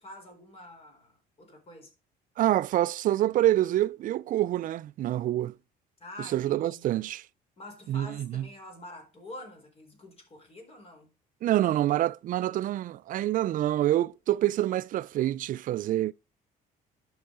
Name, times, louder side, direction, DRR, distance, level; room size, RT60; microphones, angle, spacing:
voice 1, 0.0-1.9 6.0-6.9 7.6-11.1, left 1 dB, 35° left, 4.2 m, -47 dB
voice 2, 2.4-5.5 6.2-7.3 7.9-8.5 11.4-16.1, right 13 dB, 55° right, 0.4 m, -26 dB
11.5 x 5.6 x 3.8 m
cardioid pair, 110°, 17 cm